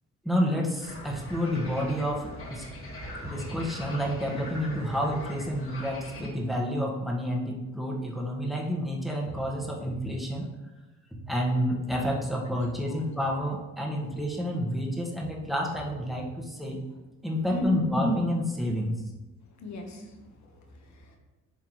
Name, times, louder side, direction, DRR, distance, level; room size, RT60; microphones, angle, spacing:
voice 1, 0.2-2.6 3.2-10.5 11.3-16.8 17.2-19.0, equal, ahead, -2 dB, 1.4 m, -29 dB
sound 1, 0.8-6.3, left 1 dB, 45° left, 1.7 m, -41 dB
voice 2, 17.5-17.9 19.6-21.2, left 1 dB, 65° left, 3 dB, 1.3 m, -36 dB
10.5 x 3.6 x 3.1 m, 1.1 s
cardioid pair, 90°, 30 cm